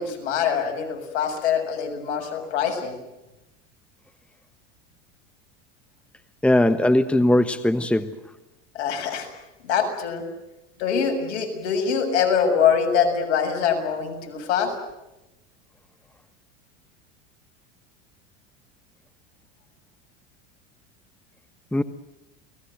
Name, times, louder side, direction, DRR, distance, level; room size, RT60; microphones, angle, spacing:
voice 1, 0.0-3.0 8.8-9.3 9.6-10.2 10.8-14.7, left 7 dB, 75° left, 4 dB, 7.1 m, -24 dB
voice 2, 6.4-8.1 21.7-21.8, left 1 dB, 5° left, 12 dB, 1.2 m, -19 dB
29.5 x 20.0 x 7.8 m, 0.95 s
supercardioid pair, 105°, 36 cm